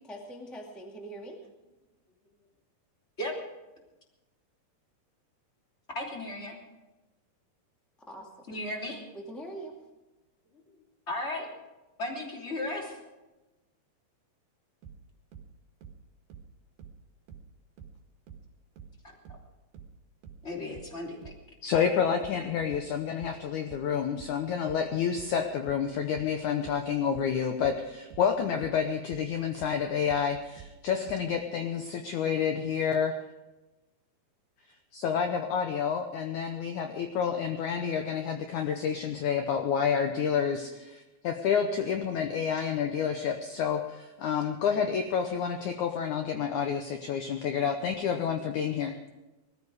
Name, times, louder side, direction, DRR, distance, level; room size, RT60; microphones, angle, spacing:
voice 1, 0.0-1.4 8.1-8.6 9.1-9.7, right 1 dB, ahead, 0 dB, 0.8 m, -43 dB
voice 2, 5.9-6.6 8.5-9.0 11.1-11.5 12.0-13.0 19.0-19.4 20.4-21.3 22.3-22.4, left 1 dB, 20° left, -1 dB, 2.9 m, -35 dB
sound 1, 14.8-18.0 18.3-31.3, right 7 dB, 70° right, 3.2 m, -49 dB
voice 3, 21.6-33.2 34.9-49.0, left 7 dB, 75° left, 5 dB, 1.8 m, -29 dB
20.0 x 14.0 x 4.9 m, 1.1 s
omnidirectional pair, 4.6 m